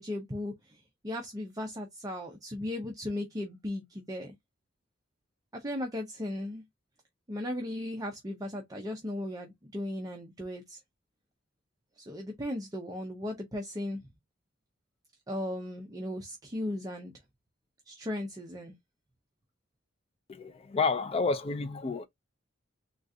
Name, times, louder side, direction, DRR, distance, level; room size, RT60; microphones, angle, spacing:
voice 1, 0.0-4.3 5.5-6.6 7.3-10.8 12.0-14.0 15.3-17.1 17.9-18.7, left 1 dB, 20° right, 0.5 m, -37 dB
voice 2, 20.3-22.1, left 4 dB, 30° left, 0.4 m, -30 dB
3.8 x 2.4 x 2.6 m
head